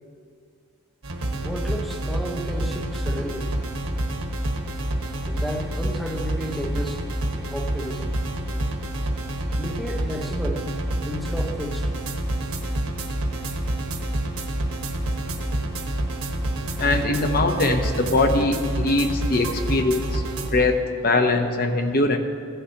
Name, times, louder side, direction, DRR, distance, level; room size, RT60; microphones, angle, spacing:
sound 1, 1.0-20.5, right 1 dB, 65° right, 1.3 m, -28 dB
voice 1, 1.4-3.5 5.3-7.0 7.4-8.2 9.6-10.7 11.0-11.9 12.9-13.0, equal, ahead, 3 dB, 0.7 m, -32 dB
voice 2, 16.8-20.2 20.5-22.2, left 2 dB, 40° left, 5 dB, 0.8 m, -22 dB
16.0 x 11.5 x 2.9 m, 2.3 s
head